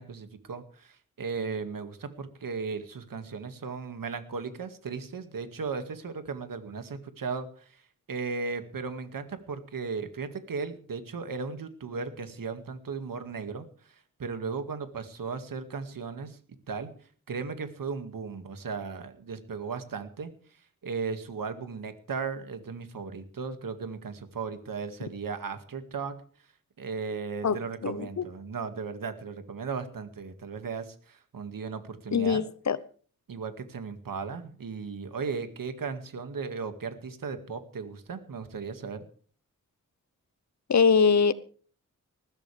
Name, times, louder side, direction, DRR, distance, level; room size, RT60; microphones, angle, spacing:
voice 1, 0.0-7.8 8.1-13.9 14.2-16.4 16.7-16.9 17.3-20.3 20.8-26.1 26.8-32.4 33.3-39.0, right 5 dB, 85° right, 2.1 m, -36 dB
voice 2, 27.4-28.2 32.1-32.8 40.7-41.3, left 5 dB, 55° left, 1.0 m, -23 dB
20.5 x 15.0 x 3.4 m
wide cardioid pair, 110°, 33 cm